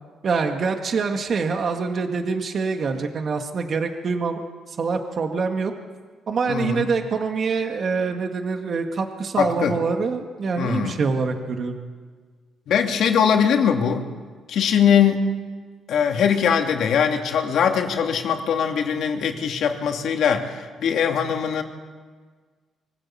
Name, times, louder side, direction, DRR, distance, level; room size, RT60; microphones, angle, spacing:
voice 1, 0.2-4.4 4.7-5.7 6.3-11.8, right 4 dB, 50° right, 4 dB, 2.0 m, -25 dB
voice 2, 6.5-6.9 9.4-9.8 10.6-11.0 12.7-14.1 14.5-15.4 15.9-21.6, left 7 dB, 70° left, 4 dB, 2.7 m, -21 dB
24.0 x 16.0 x 8.7 m, 1.5 s
cardioid pair, 90°, 0 cm